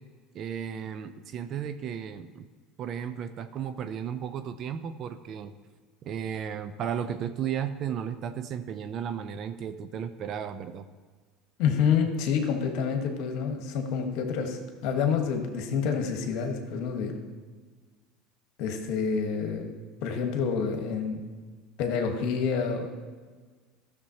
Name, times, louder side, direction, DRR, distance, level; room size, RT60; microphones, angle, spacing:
voice 1, 0.3-2.5 2.8-5.5 6.0-10.9, right 8 dB, 50° right, 10 dB, 0.5 m, -34 dB
voice 2, 11.6-17.2 18.6-19.7 20.0-21.2 21.8-22.9, left 6 dB, 65° left, 5 dB, 1.3 m, -28 dB
13.5 x 6.8 x 2.8 m, 1.5 s
hypercardioid pair, 90°, 0 cm